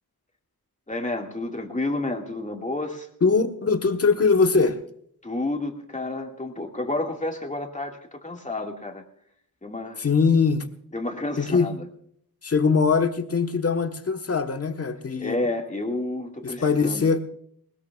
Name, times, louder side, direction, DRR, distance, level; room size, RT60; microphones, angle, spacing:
voice 1, 0.9-3.1 5.2-9.0 9.6-10.0 10.9-11.9 15.2-17.1, left 2 dB, 20° left, 2.1 m, -30 dB
voice 2, 3.2-4.8 10.0-10.7 11.4-11.7 12.4-15.4 16.4-17.2, left 5 dB, 40° left, 1.3 m, -21 dB
20.0 x 20.0 x 2.4 m
wide cardioid pair, 95°, 37 cm